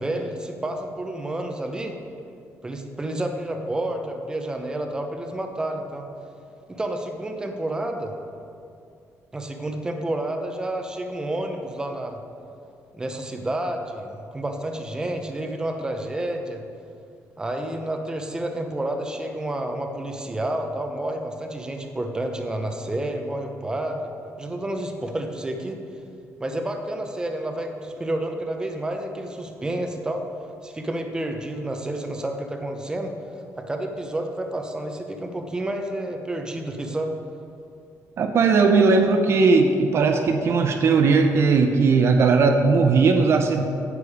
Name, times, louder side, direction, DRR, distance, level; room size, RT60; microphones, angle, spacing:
voice 1, 0.0-2.0 2.6-6.0 6.7-8.1 9.3-12.2 12.9-16.6 17.4-24.1 24.4-25.8 26.4-30.2 30.6-33.1 33.6-37.1, right 1 dB, 15° right, 4 dB, 0.8 m, -30 dB
voice 2, 38.2-43.6, right 4 dB, 50° right, 5 dB, 0.6 m, -18 dB
9.5 x 6.8 x 5.0 m, 2.5 s
cardioid pair, 140°, 6 cm